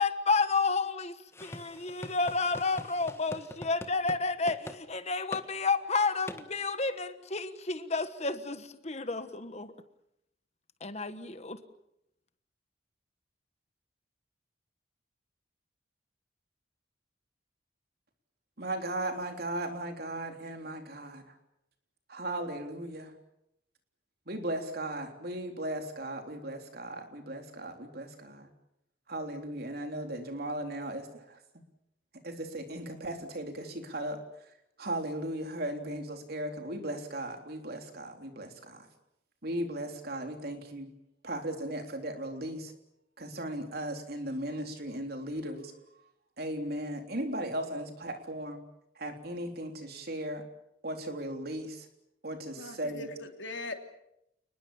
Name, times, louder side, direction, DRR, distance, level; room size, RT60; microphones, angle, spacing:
voice 1, 0.0-9.7 10.8-11.6, left 4 dB, 35° left, 11 dB, 1.3 m, -31 dB
sound 1, 1.3-4.2 4.5-4.8 5.3-5.5 6.3-6.4, left 1 dB, 15° left, 1.5 m, -43 dB
voice 2, 18.6-21.2 22.1-23.1 24.3-28.5 29.1-31.4 32.2-34.2 34.8-38.9 39.4-40.9 41.2-42.7 43.2-45.7 46.4-48.6 49.0-50.4 50.8-51.9 52.2-53.1, right 1 dB, 55° right, 5 dB, 3.6 m, -37 dB
voice 3, 52.6-53.7, left 3 dB, 80° left, 5 dB, 3.1 m, -40 dB
29.5 x 20.5 x 7.2 m, 0.80 s
head